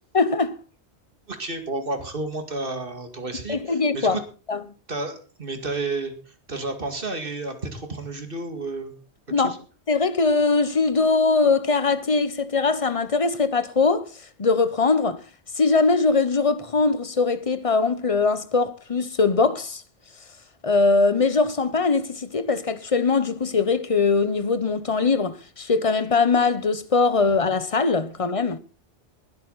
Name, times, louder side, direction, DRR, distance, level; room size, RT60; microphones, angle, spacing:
voice 1, 0.1-0.6 3.5-4.2 4.5-4.6 9.3-9.6 9.9-14.1 14.4-15.2 15.6-19.8 20.6-28.6, left 4 dB, 35° left, 0.9 m, -21 dB
voice 2, 1.3-4.2 4.9-9.0 9.4-9.6, right 3 dB, 50° right, 2.4 m, -31 dB
20.5 x 8.3 x 4.1 m
omnidirectional pair, 1.1 m